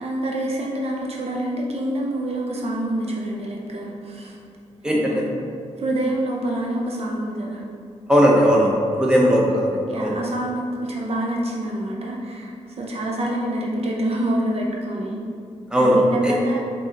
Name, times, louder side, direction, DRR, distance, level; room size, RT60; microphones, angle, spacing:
voice 1, 0.0-4.4 4.9-5.2 5.8-7.6 9.3-9.5 9.9-15.2 15.8-16.6, right 1 dB, 55° right, -2 dB, 0.6 m, -26 dB
voice 2, 4.8-5.2 8.1-10.1 15.7-16.0 16.2-16.3, equal, 5° right, -3 dB, 0.8 m, -18 dB
4.7 x 3.8 x 2.9 m, 2.3 s
cardioid pair, 95°, 12 cm